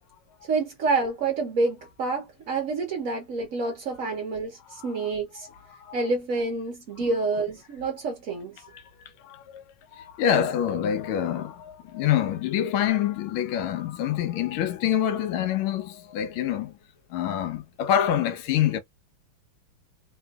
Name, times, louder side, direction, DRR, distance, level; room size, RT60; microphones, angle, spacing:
voice 1, 0.4-5.5 5.9-8.6, right 3 dB, 55° right, 0.9 m, -28 dB
voice 2, 5.4-6.0 8.6-8.8 9.2-9.6 9.9-16.7 17.1-18.8, left 10 dB, 75° left, 1.4 m, -26 dB
3.4 x 2.5 x 2.3 m
omnidirectional pair, 2.3 m